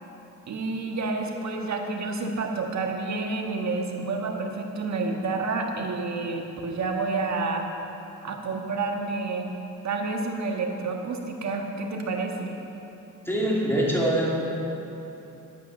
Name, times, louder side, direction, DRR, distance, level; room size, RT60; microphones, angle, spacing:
voice 1, 0.5-7.7 8.2-9.5 9.8-12.5, right 3 dB, 55° right, 2 dB, 1.6 m, -29 dB
voice 2, 13.2-14.3, right 1 dB, 5° left, -5 dB, 2.8 m, -23 dB
11.0 x 8.9 x 7.0 m, 3.0 s
cardioid pair, 110°, 34 cm